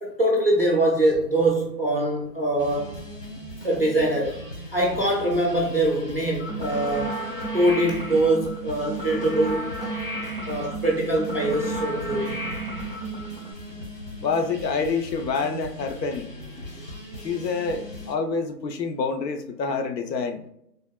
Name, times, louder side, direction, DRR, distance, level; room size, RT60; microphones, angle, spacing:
voice 1, 0.0-3.0 3.6-4.4 4.7-7.2 7.5-10.0 10.5-12.6, right 1 dB, 40° right, 0.4 m, -23 dB
sound 1, 2.6-18.2, equal, 75° left, 1.4 m, -39 dB
sound 2, 6.4-13.5, right 2 dB, 35° left, 0.5 m, -32 dB
voice 2, 14.2-16.3 17.2-20.4, left 4 dB, 90° left, 0.7 m, -27 dB
3.4 x 2.2 x 2.2 m
hypercardioid pair, 170°, 49 cm